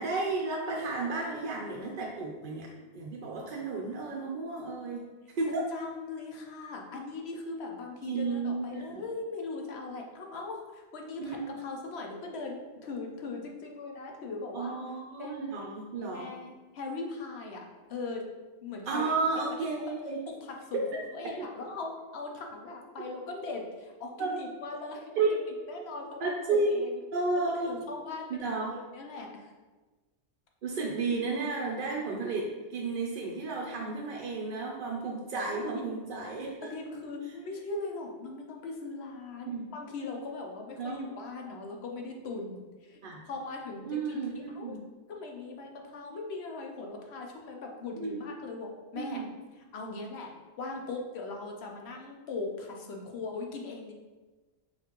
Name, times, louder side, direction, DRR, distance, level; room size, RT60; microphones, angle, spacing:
voice 1, 0.0-2.7 2.9-5.0 5.4-5.7 8.0-9.0 11.2-11.4 14.5-16.3 18.9-20.2 20.9-21.0 21.4-21.5 23.0-23.1 24.2-24.4 25.2-25.5 26.2-26.7 27.1-27.7 28.3-28.7 30.6-36.7 39.4-39.7 40.8-41.0 43.0-43.2 43.8-44.8 48.0-48.2 48.9-49.3, right 3 dB, 55° right, -2 dB, 0.6 m, -32 dB
voice 2, 5.7-14.8 15.2-15.6 16.0-18.2 18.6-19.1 20.3-20.8 21.1-25.1 25.7-26.9 27.5-29.5 35.5-35.9 36.6-43.0 43.3-44.2 44.5-44.7 45.1-49.2 49.7-50.3 50.6-53.9, left 3 dB, 70° left, 1 dB, 0.9 m, -40 dB
5.4 x 2.5 x 2.9 m, 1.2 s
omnidirectional pair, 1.2 m